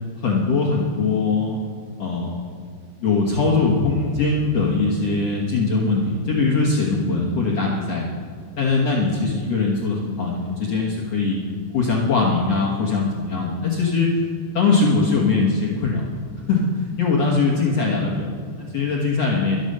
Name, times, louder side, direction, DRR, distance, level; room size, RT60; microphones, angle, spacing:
voice 1, 0.2-1.6 2.0-2.5 3.0-8.1 8.5-11.4 11.7-14.2 14.5-16.0 16.5-16.7 17.0-19.6, left 4 dB, 75° left, -2 dB, 1.4 m, -21 dB
12.5 x 12.0 x 6.6 m, 2.2 s
omnidirectional pair, 5.3 m